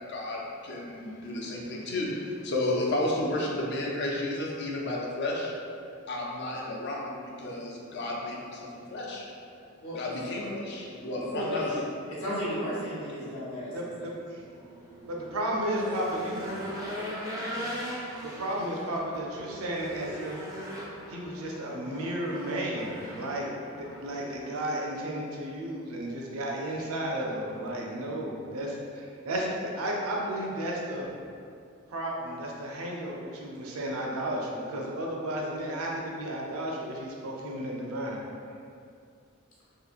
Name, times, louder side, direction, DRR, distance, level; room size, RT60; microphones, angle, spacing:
voice 1, 0.1-5.5 6.1-9.2 10.0-11.7, left 1 dB, 50° left, -2 dB, 0.4 m, -32 dB
voice 2, 9.8-10.5 11.1-11.8 12.1-13.7, equal, 80° left, -8 dB, 0.9 m, -34 dB
voice 3, 13.7-14.4 15.1-16.7 18.2-20.4 21.1-31.1 31.9-38.2, right 1 dB, 75° right, -2 dB, 0.5 m, -33 dB
Race car auto racing / Engine, 14.5-24.5, equal, 15° right, 0.3 m, -40 dB
2.9 x 2.4 x 2.4 m, 2.4 s
head